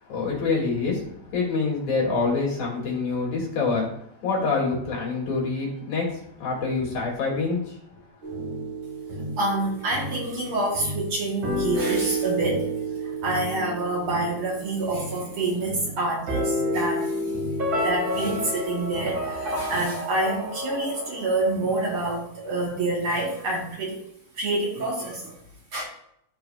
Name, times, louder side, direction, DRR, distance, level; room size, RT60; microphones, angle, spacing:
voice 1, 0.0-8.0, left 4 dB, 75° left, -4 dB, 4.0 m, -26 dB
sound 1, 8.2-19.8, right 1 dB, 85° right, 3.4 m, -31 dB
voice 2, 9.4-12.7 13.0-24.0 24.3-25.4 25.7-25.8, right 2 dB, 55° right, -2 dB, 2.0 m, -27 dB
sound 2, 17.6-21.9, left 1 dB, 40° right, 1.8 m, -31 dB
14.0 x 4.9 x 2.4 m, 0.74 s
omnidirectional pair, 3.3 m